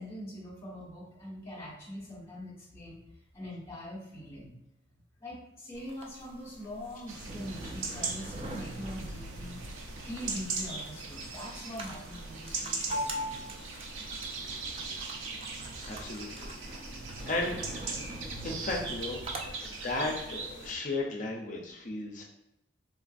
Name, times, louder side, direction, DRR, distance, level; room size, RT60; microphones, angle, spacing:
voice 1, 0.0-3.0 3.3-4.5 5.2-9.6 10.1-13.7, left 1 dB, 15° left, -6 dB, 1.3 m, -43 dB
sound 1, 5.7-19.5, right 1 dB, 30° right, 0.3 m, -42 dB
sound 2, 7.1-20.7, right 3 dB, 90° right, 0.5 m, -40 dB
voice 2, 15.8-16.5 17.2-17.6 18.4-22.3, left 2 dB, 40° left, 0 dB, 0.5 m, -35 dB
3.7 x 2.4 x 2.5 m, 0.91 s
head